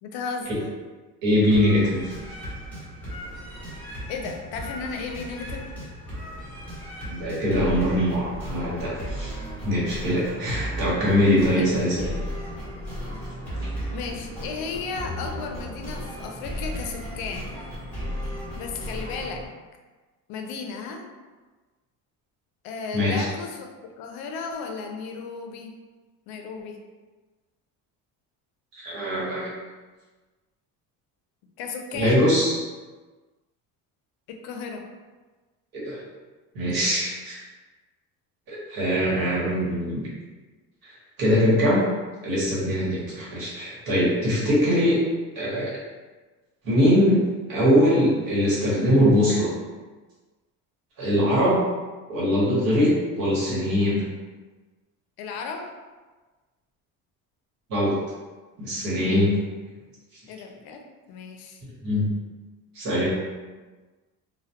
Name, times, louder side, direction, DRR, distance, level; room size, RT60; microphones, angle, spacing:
voice 1, 0.0-0.7 4.1-5.7 11.5-11.7 13.9-17.5 18.5-19.4 20.3-21.1 22.6-23.7 24.0-25.8 26.3-26.8 31.6-32.2 34.3-34.8 55.2-55.7 60.3-61.6, left 5 dB, 75° left, 4 dB, 0.5 m, -34 dB
voice 2, 1.2-2.0 7.1-9.3 9.6-12.1 22.9-23.3 28.7-29.5 31.9-32.6 35.7-36.0 36.5-37.4 38.5-40.0 40.8-40.9 41.2-41.8 42.2-45.0 45.3-45.7 46.6-47.2 47.5-49.5 51.0-51.6 52.1-54.0 57.7-57.9 58.6-59.3 61.8-62.0 62.7-63.1, equal, 65° right, -6 dB, 1.1 m, -22 dB
sound 1, 1.5-19.5, equal, 5° left, 0.8 m, -35 dB
2.2 x 2.2 x 2.7 m, 1.3 s
cardioid pair, 160°, 37 cm